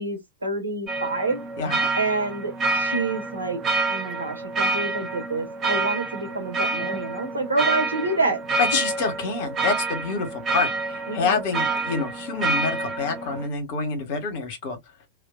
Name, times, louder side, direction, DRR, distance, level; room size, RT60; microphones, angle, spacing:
voice 1, 0.0-1.4 1.9-3.6 3.9-8.4 11.1-11.4, right 2 dB, 80° right, 1.1 m, -27 dB
sound 1, 0.9-13.5, right 3 dB, 25° right, 0.6 m, -28 dB
voice 2, 1.6-1.9 8.6-14.8, left 4 dB, 50° left, 1.1 m, -27 dB
2.5 x 2.3 x 2.4 m
figure-of-eight pair, 90°, 0 cm